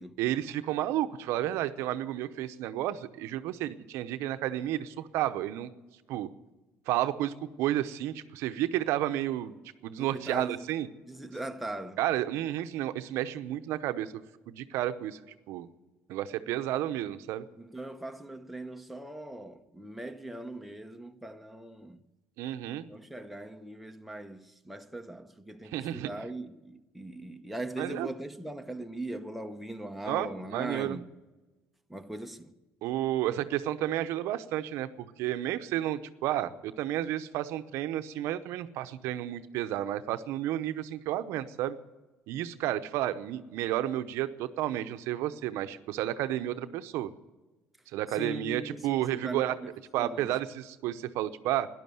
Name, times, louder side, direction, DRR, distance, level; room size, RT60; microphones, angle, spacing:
voice 1, 0.2-5.7 6.1-6.3 6.9-9.6 9.8-10.9 12.0-14.1 14.5-15.2 15.5-15.7 16.1-17.4 22.4-22.9 25.6-26.1 27.8-28.1 30.1-31.0 32.8-41.8 42.3-47.1 47.9-49.6 49.9-51.7, right 13 dB, 75° right, 0.8 m, -31 dB
voice 2, 10.0-10.7 11.1-12.0 17.6-22.0 22.9-31.1 31.9-32.5 48.1-50.3, right 1 dB, ahead, 0.9 m, -40 dB
12.5 x 11.0 x 9.3 m
cardioid pair, 115°, 5 cm